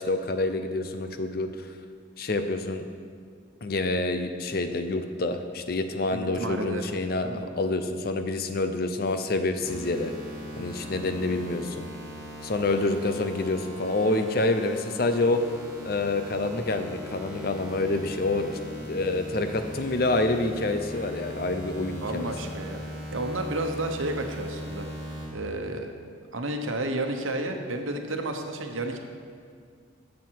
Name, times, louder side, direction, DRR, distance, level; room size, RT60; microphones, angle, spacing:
voice 1, 0.0-1.7 2.2-2.8 3.6-10.1 10.6-11.9 12.4-15.4 15.8-18.6 18.9-22.3, left 2 dB, 50° left, 8 dB, 0.6 m, -27 dB
voice 2, 6.1-6.9 7.2-7.4 18.7-18.9 22.0-22.8 23.1-24.9 25.3-25.9 26.3-29.0, right 1 dB, 85° right, 4 dB, 1.1 m, -31 dB
sound 1, 9.6-25.3, equal, 20° right, 2.4 m, -39 dB
13.5 x 7.5 x 4.7 m, 2.1 s
head